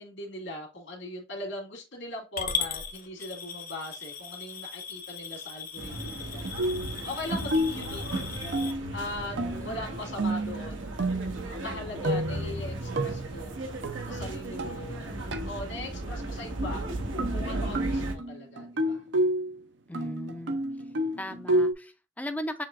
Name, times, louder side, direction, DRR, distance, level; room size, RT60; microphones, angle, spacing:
voice 1, 0.0-6.5 7.0-8.2 8.9-9.4 9.6-10.9 11.5-13.5 14.0-16.9 17.3-19.0, left 1 dB, 75° left, 1.9 m, -40 dB
Coin (dropping) / Glass, 2.4-8.7, left 6 dB, 45° left, 0.7 m, -37 dB
sound 1, 5.8-18.1, right 1 dB, 90° right, 1.2 m, -35 dB
sound 2, 6.6-7.0 7.5-7.9 8.5-9.0 9.4-9.8 10.2-11.5 12.0-15.0 15.3-15.5 17.2-19.6 19.9-21.7, right 1 dB, 65° right, 0.6 m, -30 dB
voice 2, 9.3-9.8 19.9-20.6 21.2-22.6, left 1 dB, 10° left, 0.5 m, -37 dB
7.1 x 3.0 x 2.4 m
head